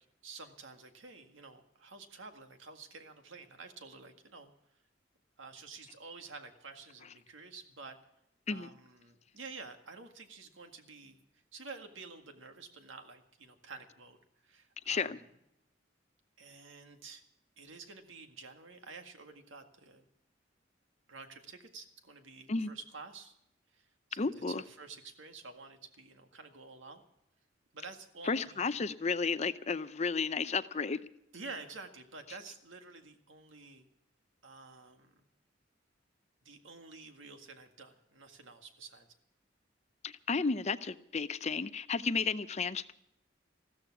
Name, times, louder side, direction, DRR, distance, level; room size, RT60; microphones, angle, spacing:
voice 1, 0.2-4.5 5.4-8.0 8.5-11.2 11.5-14.2 14.4-15.2 16.4-17.2 17.6-20.0 21.1-23.3 23.7-27.0 27.7-28.7 31.3-33.9 34.4-35.2 36.5-39.1, right 4 dB, 85° right, 1.9 m, -50 dB
voice 2, 14.9-15.2 22.5-22.7 24.2-24.6 28.2-31.0 40.0-42.9, left 4 dB, 35° left, 0.6 m, -33 dB
15.0 x 13.5 x 5.9 m
head